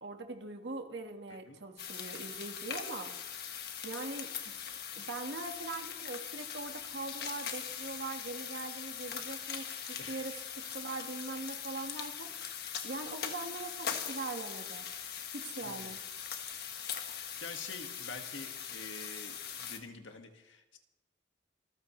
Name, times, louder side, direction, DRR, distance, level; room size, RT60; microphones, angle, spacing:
voice 1, 0.0-3.4 3.8-4.3 4.9-12.3 12.8-14.9 15.3-16.0, right 3 dB, 70° right, 4 dB, 1.7 m, -42 dB
sound 1, 1.8-19.8, left 8 dB, 55° left, 1.5 m, -41 dB
voice 2, 17.1-20.8, left 3 dB, 90° left, 4 dB, 1.9 m, -47 dB
26.5 x 14.5 x 3.3 m, 1.0 s
head